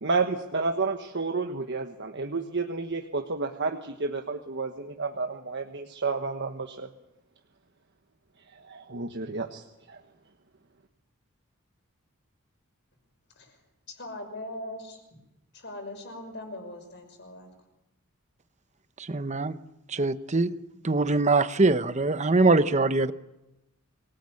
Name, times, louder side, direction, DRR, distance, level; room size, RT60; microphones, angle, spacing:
voice 1, 0.0-6.9 8.5-10.0, right 4 dB, 55° right, 5 dB, 1.3 m, -31 dB
voice 2, 14.0-15.0 15.5-17.5, left 1 dB, 55° left, 5 dB, 6.0 m, -40 dB
voice 3, 19.0-19.6 19.9-20.5 20.8-23.1, right 3 dB, 35° right, 12 dB, 0.9 m, -23 dB
25.5 x 18.0 x 8.6 m, 0.94 s
head